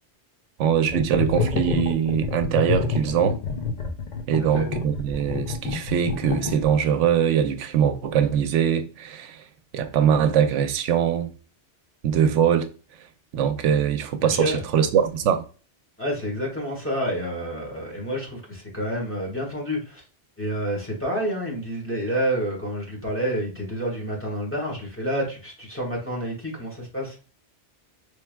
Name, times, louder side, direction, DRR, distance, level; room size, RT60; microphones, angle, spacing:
voice 1, 0.6-3.4 4.3-9.4 9.7-11.3 12.0-12.7 13.3-15.4, right 8 dB, 85° right, 0.9 m, -22 dB
sound 1, 0.9-7.0, left 5 dB, 45° left, 0.7 m, -28 dB
voice 2, 14.2-14.6 16.0-20.0 20.4-27.2, equal, 10° left, 1.5 m, -28 dB
4.5 x 3.3 x 2.2 m
omnidirectional pair, 1.2 m